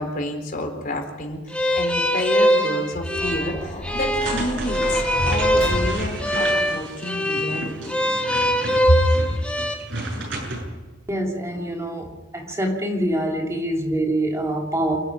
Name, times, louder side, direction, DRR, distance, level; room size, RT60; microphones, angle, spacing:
voice 1, 0.0-7.9 8.8-9.1, left 1 dB, 45° left, 3 dB, 4.2 m, -28 dB
sound 1, 1.5-9.7, equal, 5° left, 1.8 m, -22 dB
sound 2, 3.2-6.5, equal, 30° left, 2.8 m, -30 dB
sound 3, 4.2-10.6, right 2 dB, 70° right, 7.9 m, -33 dB
voice 2, 11.1-15.0, right 1 dB, 15° right, 0 dB, 2.7 m, -25 dB
29.0 x 10.0 x 9.6 m, 1.4 s
head